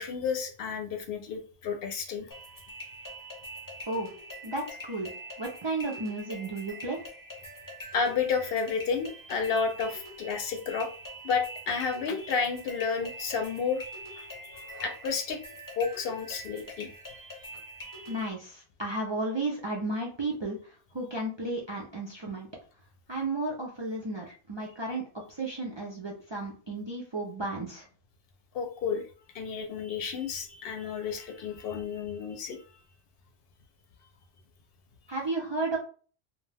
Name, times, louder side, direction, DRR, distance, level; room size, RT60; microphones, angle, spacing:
voice 1, 0.0-2.3 7.9-10.9 11.2-13.8 14.1-15.4 15.8-16.9 28.5-29.1 29.3-32.6, left 5 dB, 70° left, 5 dB, 0.7 m, -31 dB
sound 1, 2.3-18.3, equal, 25° left, 0.6 m, -44 dB
voice 2, 4.4-5.1 5.4-7.0 18.1-22.5 23.1-25.0 25.3-27.9 35.1-35.8, right 2 dB, 40° right, -2 dB, 0.4 m, -33 dB
2.3 x 2.2 x 3.2 m, 0.39 s
omnidirectional pair, 1.1 m